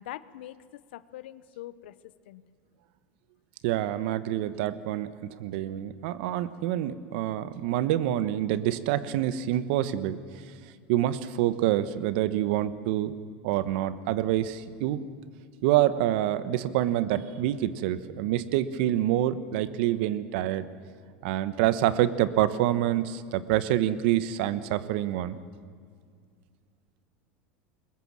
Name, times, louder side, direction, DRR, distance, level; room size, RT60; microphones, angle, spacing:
voice 1, 0.0-2.4, left 14 dB, 80° left, 16 dB, 0.9 m, -43 dB
voice 2, 3.6-10.2 10.9-13.1 13.4-15.0 15.6-20.7 21.2-25.4, right 13 dB, 70° right, 14 dB, 1.1 m, -27 dB
22.0 x 20.0 x 7.4 m, 2.1 s
supercardioid pair, 105°, 6 cm